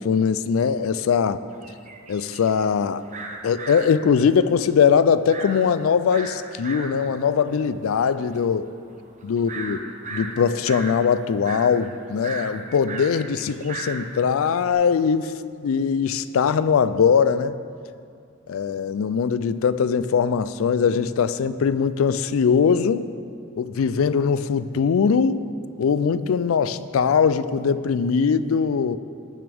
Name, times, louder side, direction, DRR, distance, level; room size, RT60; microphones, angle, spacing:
voice 1, 0.0-1.4 2.1-3.0 3.4-8.7 9.2-9.8 10.1-15.3 15.6-17.6 18.5-23.0 23.6-25.5 25.8-29.0, left 6 dB, 80° left, 14 dB, 0.4 m, -21 dB
sound 1, 1.5-14.7, right 3 dB, 35° right, 0.8 m, -37 dB
16.5 x 6.7 x 3.5 m, 2.3 s
head